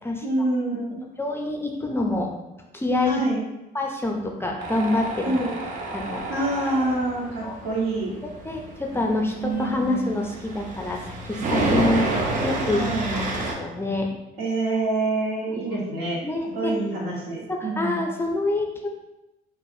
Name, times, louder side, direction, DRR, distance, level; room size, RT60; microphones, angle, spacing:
voice 1, 0.2-1.1 3.0-3.4 5.2-5.5 6.3-8.1 9.4-10.1 12.7-13.3 14.4-16.2 16.5-18.0, right 2 dB, 75° right, -4 dB, 1.4 m, -26 dB
voice 2, 1.2-2.3 2.7-3.2 3.7-5.3 5.9-6.2 7.4-7.5 8.4-12.8 13.1-13.2 13.6-14.1 16.2-16.8 17.5-18.9, left 2 dB, 15° left, 2 dB, 0.4 m, -26 dB
Tools, 4.6-13.5, right 2 dB, 50° right, 0.7 m, -29 dB
4.7 x 2.4 x 2.7 m, 0.96 s
cardioid pair, 110°, 17 cm